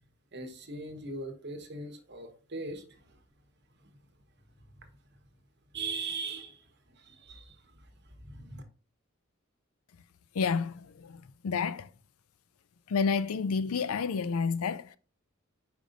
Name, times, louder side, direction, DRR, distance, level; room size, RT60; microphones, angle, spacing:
voice 1, 0.3-3.2 3.8-3.9 4.7-4.9 5.7-8.6, right 3 dB, 50° right, 1.1 m, -40 dB
voice 2, 10.3-11.9 12.9-15.0, left 5 dB, 85° left, 0.4 m, -30 dB
5.1 x 5.0 x 3.9 m
head